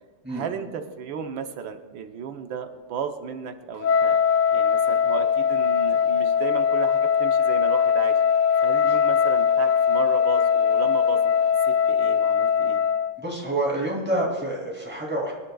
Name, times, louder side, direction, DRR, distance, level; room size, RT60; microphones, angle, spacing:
voice 1, 0.3-4.2 4.5-8.2 8.6-11.5 11.9-12.8, right 6 dB, 85° right, 6 dB, 1.6 m, -34 dB
Wind instrument woodwind instrument, 3.8-13.2, left 7 dB, 75° left, 1.1 m, -21 dB
voice 2, 13.2-15.3, right 1 dB, 5° right, -2 dB, 2.7 m, -27 dB
25.0 x 11.5 x 2.3 m, 1.3 s
omnidirectional pair, 2.0 m